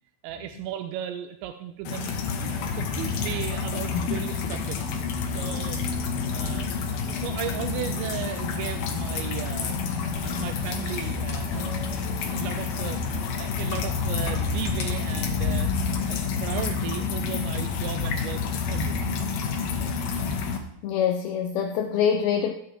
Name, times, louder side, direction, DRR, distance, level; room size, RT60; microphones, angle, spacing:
voice 1, 0.2-2.1 2.4-5.0 5.3-9.8 10.2-12.0 12.3-13.0 13.4-15.7 16.1-19.1, right 11 dB, 85° right, 7 dB, 2.9 m, -36 dB
sound 1, 1.9-20.6, left 5 dB, 65° left, 2.7 m, -28 dB
Subway metro underground, 9.9-16.5, right 2 dB, 55° right, 3.5 m, -46 dB
voice 2, 20.8-22.5, left 8 dB, 85° left, 5 dB, 2.2 m, -25 dB
16.0 x 9.8 x 3.4 m, 0.77 s
omnidirectional pair, 5.2 m